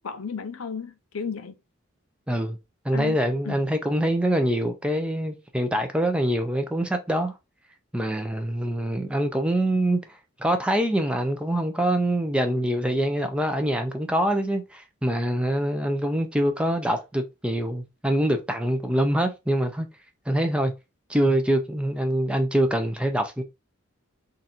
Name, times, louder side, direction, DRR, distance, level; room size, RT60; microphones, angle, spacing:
voice 1, 0.0-1.5 2.9-3.2 3.4-3.7, left 6 dB, 85° left, 0.7 m, -34 dB
voice 2, 2.8-7.3 7.9-10.0 10.4-19.9 20.3-20.7 21.1-23.4, right 1 dB, 5° right, 0.5 m, -24 dB
3.8 x 2.6 x 4.2 m
head